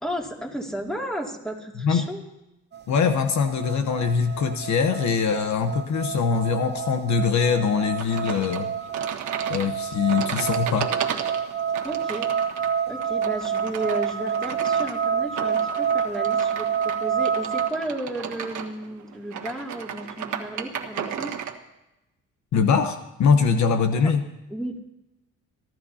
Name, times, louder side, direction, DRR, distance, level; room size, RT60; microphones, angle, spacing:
voice 1, 0.0-2.2 11.8-12.3 12.9-21.3 23.9-24.1 24.5-24.8, right 1 dB, ahead, 0 dB, 2.5 m, -33 dB
voice 2, 1.8-2.1 2.9-8.7 9.5-10.9 22.5-24.2, left 5 dB, 65° left, 7 dB, 1.1 m, -22 dB
sound 1, 2.7-17.7, right 7 dB, 35° right, 0.8 m, -28 dB
sound 2, 8.0-21.6, right 8 dB, 75° right, 1.4 m, -34 dB
28.0 x 12.0 x 2.8 m, 0.92 s
cardioid pair, 90°, 30 cm